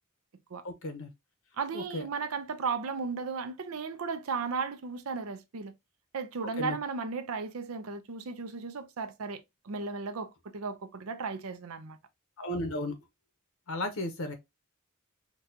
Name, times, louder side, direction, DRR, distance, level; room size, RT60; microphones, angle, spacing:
voice 1, 0.6-1.1 1.7-2.0 6.6-6.8 12.4-12.9 13.7-14.3, left 1 dB, 70° left, 0.7 m, -34 dB
voice 2, 1.6-5.7 6.1-12.0, right 5 dB, 80° right, 0.5 m, -35 dB
4.0 x 2.3 x 2.6 m
head